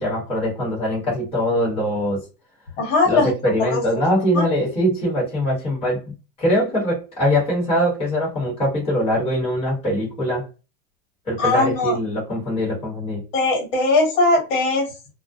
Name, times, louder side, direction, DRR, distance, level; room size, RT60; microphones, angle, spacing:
voice 1, 0.0-2.2 3.0-10.4 11.3-13.2, equal, 15° left, 1.0 m, -22 dB
voice 2, 2.8-3.3 3.7-3.8 4.3-4.5 11.4-12.0 13.3-15.1, left 3 dB, 55° left, 1.3 m, -20 dB
2.3 x 2.1 x 2.5 m
supercardioid pair, 155°, 45 cm